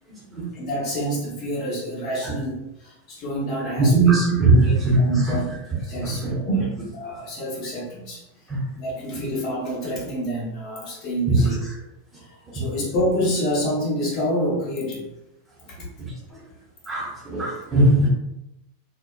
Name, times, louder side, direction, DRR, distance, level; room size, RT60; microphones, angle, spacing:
voice 1, 0.5-4.1 4.5-5.4 5.7-6.6 6.9-8.2 8.7-11.6 12.2-15.1, equal, 40° left, -4 dB, 0.9 m, -28 dB
voice 2, 3.8-5.4 6.0-6.7 8.5-8.6 11.3-11.4 16.0-16.4 16.9-18.1, right 2 dB, 15° right, -5 dB, 0.8 m, -20 dB
2.7 x 2.0 x 2.3 m, 0.88 s
figure-of-eight pair, 90°, 0 cm